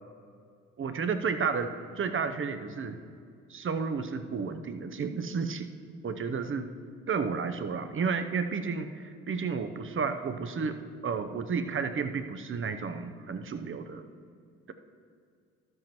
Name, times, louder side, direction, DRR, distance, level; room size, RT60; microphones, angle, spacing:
voice 1, 0.8-1.7 2.0-3.0 3.5-5.7 6.0-6.7 7.1-14.1, right 5 dB, 35° right, 8 dB, 0.7 m, -32 dB
12.5 x 7.6 x 3.0 m, 2.2 s
hypercardioid pair, 50°, 37 cm